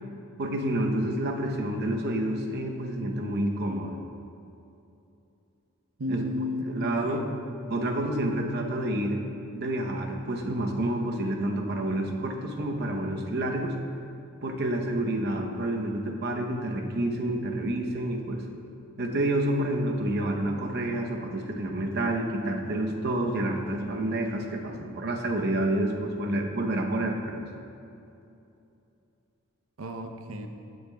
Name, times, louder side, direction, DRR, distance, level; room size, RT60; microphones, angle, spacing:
voice 1, 0.4-4.0 6.1-6.2 6.7-7.3 7.7-9.2 9.5-13.8 14.4-18.4 19.0-27.4, right 1 dB, 55° right, 2 dB, 0.8 m, -29 dB
voice 2, 6.0-7.3 29.8-30.5, left 1 dB, 85° right, 5 dB, 0.7 m, -33 dB
15.5 x 6.6 x 2.3 m, 2.7 s
head